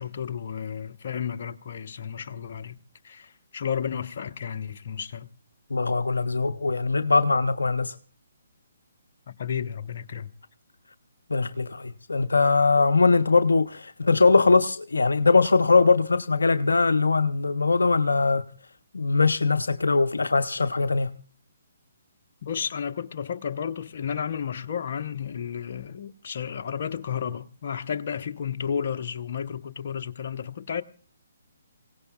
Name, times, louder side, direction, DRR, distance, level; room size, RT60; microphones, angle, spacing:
voice 1, 0.0-2.8 3.0-5.3 9.3-10.3 22.4-30.8, left 7 dB, 55° left, 0.9 m, -32 dB
voice 2, 5.7-8.0 11.3-18.4 18.9-21.1, left 4 dB, 80° left, 0.7 m, -21 dB
27.0 x 17.5 x 2.4 m
figure-of-eight pair, 140°, 0 cm